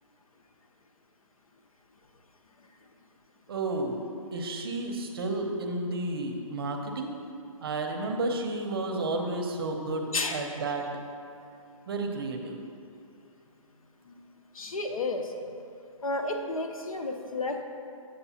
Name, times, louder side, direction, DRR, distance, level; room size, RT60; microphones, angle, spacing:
voice 1, 3.5-4.0 4.3-7.2 7.6-10.8 11.9-12.6, right 2 dB, 45° right, 4 dB, 0.7 m, -31 dB
voice 2, 14.5-15.3 16.0-17.6, left 2 dB, 80° left, 4 dB, 0.9 m, -31 dB
8.0 x 7.6 x 2.8 m, 2.5 s
hypercardioid pair, 160°, 18 cm